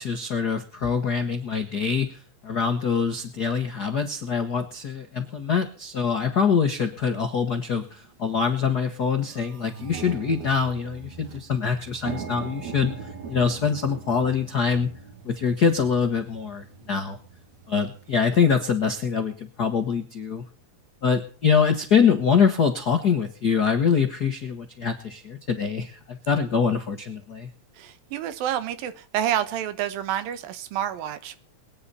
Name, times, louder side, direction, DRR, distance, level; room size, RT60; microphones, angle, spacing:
voice 1, 0.0-2.1 2.4-12.9 13.3-14.9 15.2-17.2 17.7-20.4 21.0-27.5, left 6 dB, 80° left, 6 dB, 0.8 m, -24 dB
sound 1, 7.0-7.1 7.8-8.1 8.5-8.6 8.8-18.5, right 6 dB, 60° right, 3.4 m, -41 dB
voice 2, 27.8-31.4, right 11 dB, 90° right, 12 dB, 2.9 m, -28 dB
23.0 x 9.6 x 4.2 m, 0.43 s
omnidirectional pair, 4.0 m